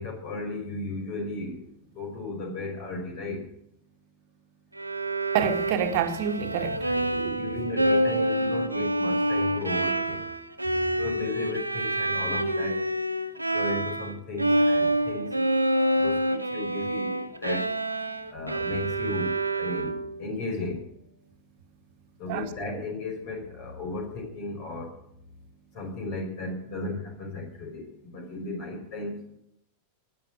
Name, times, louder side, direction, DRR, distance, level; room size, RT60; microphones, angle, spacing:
voice 1, 0.0-1.6 2.0-3.4 6.8-10.3 11.0-12.8 13.5-15.4 16.0-17.6 18.3-20.8 22.2-24.9 25.7-29.2, left 2 dB, 45° left, 5.4 m, -35 dB
Bowed string instrument, 4.8-14.1 14.4-20.2, right 1 dB, 85° right, 1.0 m, -27 dB
voice 2, 5.3-7.4 22.3-22.5, right 8 dB, 50° right, 1.8 m, -28 dB
19.0 x 10.0 x 6.3 m
figure-of-eight pair, 90°, 0 cm